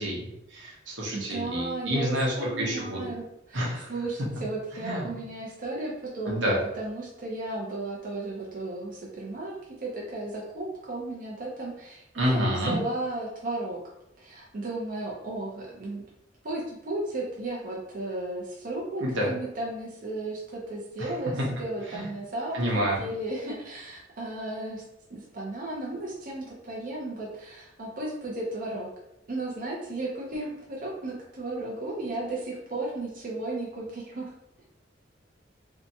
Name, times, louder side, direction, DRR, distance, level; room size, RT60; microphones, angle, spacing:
voice 1, 0.0-3.1 3.5-3.9 4.8-5.0 6.3-6.6 12.1-12.8 19.0-19.3 21.0-21.1 21.9-22.0 22.5-23.0, equal, 85° right, -3 dB, 0.9 m, -28 dB
voice 2, 1.1-13.8 14.2-16.0 16.4-24.8 25.1-28.9 29.3-34.3, right 2 dB, 50° right, -4 dB, 0.6 m, -34 dB
2.7 x 2.2 x 2.7 m, 0.83 s
head